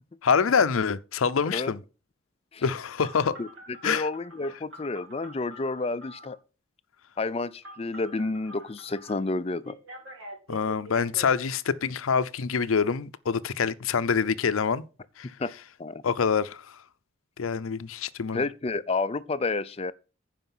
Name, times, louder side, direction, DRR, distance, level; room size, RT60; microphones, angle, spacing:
voice 1, 0.2-1.8 2.6-3.4 3.8-4.1 10.5-14.8 15.2-15.3 16.0-16.7 17.4-18.4, left 6 dB, 85° left, 0.6 m, -26 dB
Telephone, 3.0-6.4 7.6-9.1 9.7-11.3, equal, 70° right, 2.8 m, -45 dB
voice 2, 3.8-6.4 7.2-9.8 15.4-15.5 15.8-16.0 18.3-19.9, left 3 dB, 30° left, 0.4 m, -30 dB
11.5 x 5.0 x 5.4 m
head